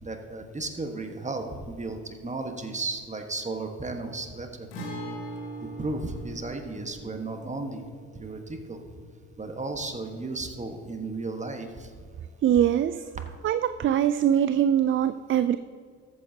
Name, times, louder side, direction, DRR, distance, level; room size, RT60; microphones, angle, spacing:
voice 1, 0.0-4.7 5.8-7.8 8.1-8.9 9.4-11.9, right 3 dB, 20° right, 5 dB, 1.5 m, -34 dB
Guitar, 4.7-12.3 12.6-12.7 14.7-14.8, right 1 dB, 85° left, 2.2 m, -42 dB
voice 2, 12.4-13.1 13.4-15.6, right 10 dB, 40° right, 13 dB, 0.4 m, -23 dB
14.0 x 8.5 x 2.8 m, 2.1 s
hypercardioid pair, 50°, 34 cm